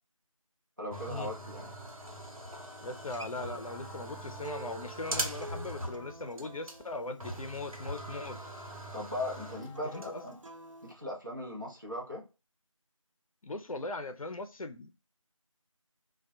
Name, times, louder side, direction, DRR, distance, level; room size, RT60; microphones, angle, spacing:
voice 1, 0.8-1.7 8.9-10.4 10.8-12.2, left 1 dB, 35° right, 0.7 m, -38 dB
sound 1, 0.9-6.1 6.4-6.5 6.7-6.8 7.2-10.0, right 1 dB, 85° right, 0.9 m, -41 dB
voice 2, 2.8-8.4 9.9-10.3 13.4-14.9, left 2 dB, 80° left, 0.5 m, -39 dB
Acoustic guitar, 2.9-8.1 9.7-10.9, right 3 dB, 65° right, 0.4 m, -49 dB
Wind instrument woodwind instrument, 3.6-10.6, left 1 dB, 45° left, 0.9 m, -55 dB
2.2 x 2.2 x 2.6 m
figure-of-eight pair, 175°, 18 cm